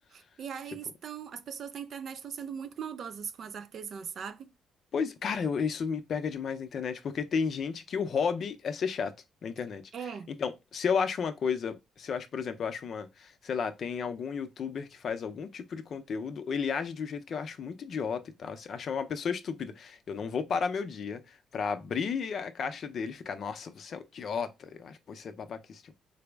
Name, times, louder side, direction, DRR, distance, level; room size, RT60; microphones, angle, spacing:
voice 1, 0.1-4.5 9.9-10.3, right 7 dB, 60° right, 0.4 m, -40 dB
voice 2, 4.9-9.1 9.4-25.9, left 6 dB, 55° left, 0.5 m, -33 dB
4.0 x 2.0 x 3.3 m
cardioid pair, 90°, 0 cm